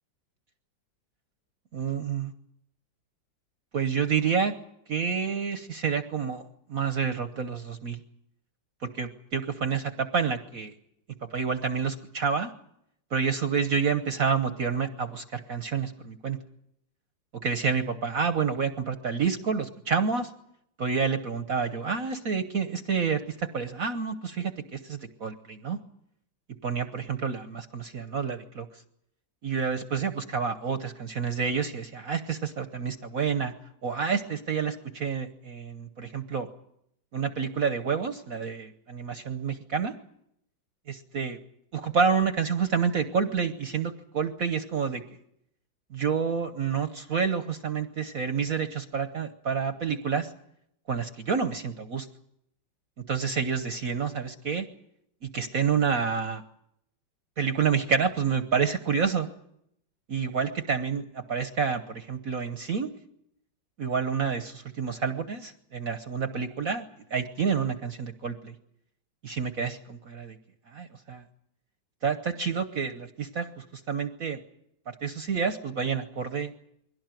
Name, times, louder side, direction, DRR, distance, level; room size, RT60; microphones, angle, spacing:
voice 1, 1.7-2.3 3.7-4.5 4.9-8.0 8.8-10.7 11.3-12.5 13.1-16.4 17.4-20.3 20.8-25.8 26.6-28.7 29.4-33.5 33.8-36.5 37.1-39.9 41.1-41.4 41.7-45.0 45.9-50.3 50.9-52.1 53.0-54.7 55.2-56.4 57.4-59.3 60.1-62.9 63.8-66.8 67.1-68.5 69.2-70.4 70.7-71.2 72.0-74.4 74.9-76.5, right 6 dB, 50° right, 8 dB, 1.3 m, -29 dB
22.0 x 17.5 x 9.1 m, 0.76 s
omnidirectional pair, 2.1 m